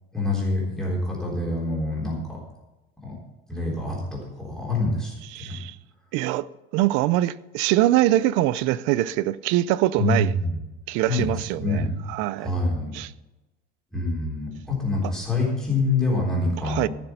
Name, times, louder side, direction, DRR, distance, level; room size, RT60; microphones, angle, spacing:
voice 1, 0.1-2.4 3.0-3.2 3.5-5.6 10.0-10.6 11.1-11.3 11.6-12.0 12.4-12.9 13.9-16.9, left 2 dB, 5° left, 3.7 m, -26 dB
voice 2, 5.3-5.8 6.1-6.5 6.7-10.3 10.9-11.8 12.1-12.5 12.9-13.1 16.6-16.9, right 15 dB, 65° right, 0.5 m, -23 dB
15.5 x 6.7 x 5.7 m
cardioid pair, 165°, 21 cm